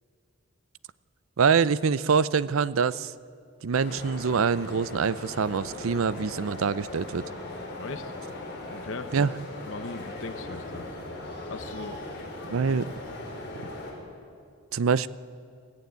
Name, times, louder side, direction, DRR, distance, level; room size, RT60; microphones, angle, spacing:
voice 1, 1.4-3.1 3.6-7.3 9.1-9.3 12.5-12.9 14.7-15.1, right 6 dB, 75° right, 18 dB, 0.5 m, -25 dB
sound 1, 3.8-13.9, left 2 dB, 50° left, 4.9 m, -39 dB
voice 2, 7.8-8.1 8.7-9.3 9.6-10.9 11.5-12.0, left 3 dB, 70° left, 10 dB, 0.8 m, -39 dB
21.5 x 14.5 x 9.2 m, 2.3 s
head